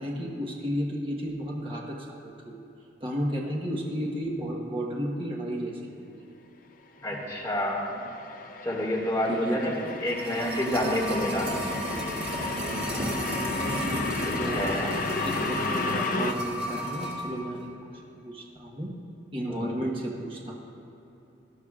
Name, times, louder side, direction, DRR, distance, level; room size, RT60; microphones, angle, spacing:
voice 1, 0.0-2.6 3.0-6.3 7.1-7.2 9.3-9.9 12.8-13.4 14.3-15.0 15.2-15.3 15.7-19.0 19.3-20.5, equal, 30° right, -2 dB, 1.2 m, -33 dB
voice 2, 7.0-8.0 8.6-11.5 14.2-14.9 19.5-19.8, equal, 15° left, -5 dB, 2.0 m, -29 dB
sound 1, 7.2-16.3, left 4 dB, 45° left, 0.5 m, -34 dB
sound 2, 9.8-17.3 17.6-17.7, right 1 dB, 55° right, 2.3 m, -32 dB
18.0 x 12.5 x 2.4 m, 2.9 s
head